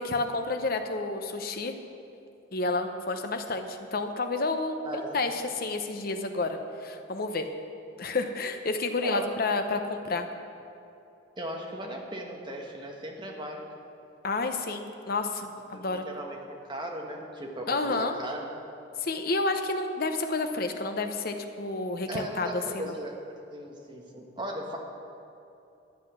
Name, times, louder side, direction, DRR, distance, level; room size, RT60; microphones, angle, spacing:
voice 1, 0.0-1.8 2.5-7.5 8.0-10.3 14.2-16.1 17.7-18.2 19.0-23.0, left 3 dB, 50° left, 6 dB, 0.8 m, -30 dB
voice 2, 4.8-5.2 9.0-9.3 11.4-13.7 15.7-18.5 22.0-23.1 23.5-24.8, right 1 dB, 25° right, 0 dB, 1.3 m, -37 dB
12.5 x 8.2 x 6.2 m, 2.8 s
head